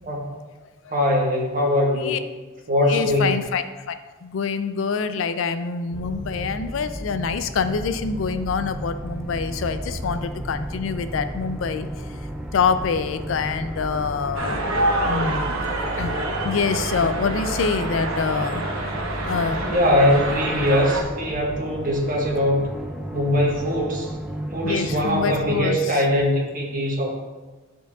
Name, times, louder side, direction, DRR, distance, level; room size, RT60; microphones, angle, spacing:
voice 1, 0.9-2.2 2.7-3.4 19.6-22.7 23.1-24.1 24.5-27.1, left 1 dB, 45° right, -1 dB, 1.3 m, -21 dB
voice 2, 2.9-11.9 12.5-14.6 15.0-15.6 16.0-16.1 16.4-18.9 19.2-19.7 24.6-26.0, left 5 dB, 70° left, 10 dB, 0.4 m, -26 dB
sound 1, 5.9-25.7, right 1 dB, 5° right, 0.4 m, -33 dB
sound 2, 14.3-21.0, right 1 dB, 90° right, 0.9 m, -27 dB
10.5 x 4.5 x 2.4 m, 1.2 s
head